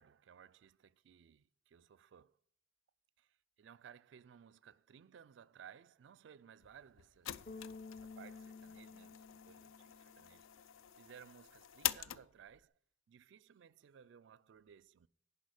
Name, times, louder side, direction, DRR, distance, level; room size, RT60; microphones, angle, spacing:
voice 1, 0.0-2.4 3.2-12.7 13.1-15.1, right 8 dB, 65° right, 0.3 m, -60 dB
sound 1, 6.6-12.6, left 12 dB, 85° left, 0.5 m, -45 dB
Bass guitar, 7.5-10.6, left 4 dB, 35° left, 0.6 m, -52 dB
10.5 x 5.5 x 6.3 m
head